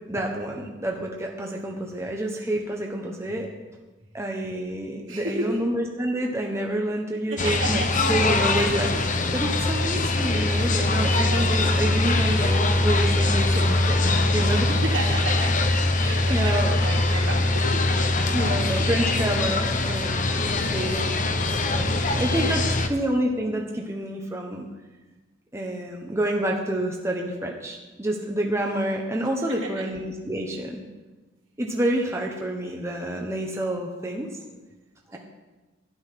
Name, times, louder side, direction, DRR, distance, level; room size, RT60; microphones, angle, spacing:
voice 1, 0.1-3.5 4.1-7.8 8.1-14.8 16.3-16.8 18.3-21.1 21.7-24.6 25.5-30.8 31.6-34.3 35.1-35.2, right 1 dB, 15° right, 0 dB, 1.1 m, -28 dB
voice 2, 5.1-5.6 7.3-8.0 10.8-11.4 14.7-15.6 16.0-17.9 22.4-22.6 29.4-29.9 35.1-35.2, right 2 dB, 70° right, -2 dB, 3.2 m, -33 dB
sound 1, 7.4-22.9, left 2 dB, 40° left, 1.0 m, -22 dB
12.5 x 10.5 x 5.9 m, 1.2 s
head